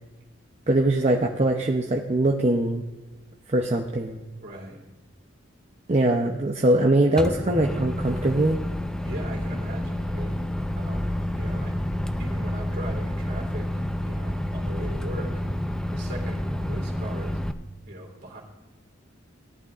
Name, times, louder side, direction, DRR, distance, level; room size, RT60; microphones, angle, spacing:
voice 1, 0.7-2.8 3.5-4.2 5.9-8.6, right 1 dB, 35° right, 1 dB, 0.7 m, -22 dB
voice 2, 4.4-4.8 9.0-10.5 10.7-11.7 12.2-13.7 14.0-15.3 15.9-17.4 17.9-18.4, right 1 dB, 55° right, 0 dB, 3.0 m, -39 dB
Microwave oven, 7.2-17.5, left 1 dB, 5° left, 0.4 m, -29 dB
17.5 x 11.0 x 2.5 m, 1.2 s
head